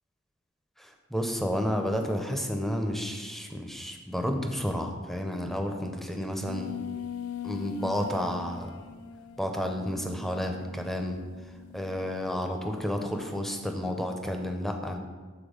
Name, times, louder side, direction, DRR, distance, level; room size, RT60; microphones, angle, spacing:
voice 1, 0.8-6.7 7.4-8.7 9.4-11.2 11.7-15.0, equal, ahead, 3 dB, 0.5 m, -31 dB
sound 1, 6.5-12.5, left 7 dB, 70° left, 0.4 m, -41 dB
7.2 x 4.1 x 5.0 m, 1.4 s
head